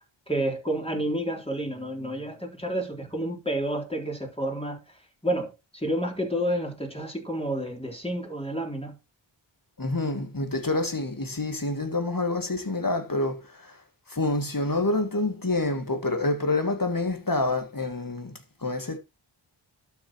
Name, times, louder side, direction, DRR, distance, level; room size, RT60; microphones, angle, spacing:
voice 1, 0.3-4.8 5.2-8.9, right 1 dB, 10° left, 3.9 m, -30 dB
voice 2, 9.8-13.7 14.1-19.0, left 2 dB, 45° left, 2.4 m, -27 dB
12.0 x 7.3 x 3.1 m
wide cardioid pair, 40°, 48 cm